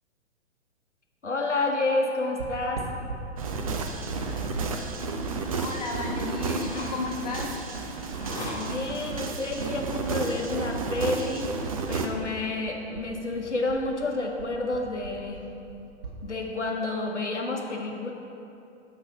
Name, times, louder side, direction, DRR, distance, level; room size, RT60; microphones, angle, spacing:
voice 1, 1.2-2.9 8.5-11.5 11.9-15.4 16.2-18.1, left 2 dB, 85° left, 1 dB, 0.9 m, -29 dB
sound 1, 2.4-10.7 10.9-12.6 12.9-16.2, right 4 dB, 50° right, 1.1 m, -41 dB
sound 2, 3.4-12.1, right 4 dB, 30° right, 0.4 m, -32 dB
sound 3, 5.4-11.2, left 1 dB, 10° left, 0.8 m, -43 dB
voice 2, 5.6-7.6, left 4 dB, 35° left, 1 dB, 0.4 m, -33 dB
8.3 x 3.2 x 5.1 m, 2.8 s
figure-of-eight pair, 115°, 35 cm